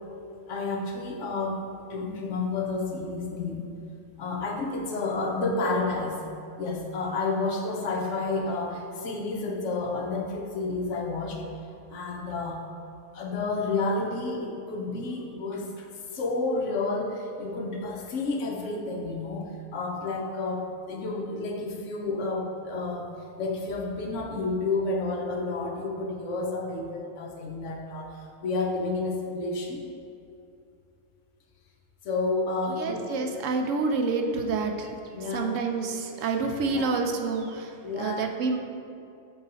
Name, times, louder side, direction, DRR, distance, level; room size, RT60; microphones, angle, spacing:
voice 1, 0.5-1.6 1.9-3.6 4.2-6.2 6.6-11.4 11.9-12.6 13.1-15.9 16.1-23.1 23.4-29.8 32.0-33.1 35.1-35.6 36.6-36.9 37.8-38.3, left 3 dB, 70° left, 1 dB, 1.1 m, -30 dB
voice 2, 32.8-35.0 35.3-38.6, right 4 dB, 85° right, 4 dB, 1.0 m, -28 dB
6.2 x 4.0 x 4.0 m, 2.6 s
omnidirectional pair, 1.3 m